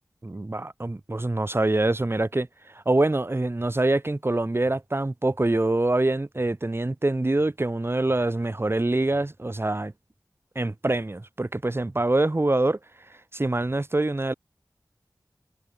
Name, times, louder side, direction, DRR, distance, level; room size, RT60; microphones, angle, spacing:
voice 1, 0.2-2.5 2.9-9.9 10.6-12.8 13.3-14.3, right 2 dB, 40° right, 3.7 m, -25 dB
wide cardioid pair, 60°, 6 cm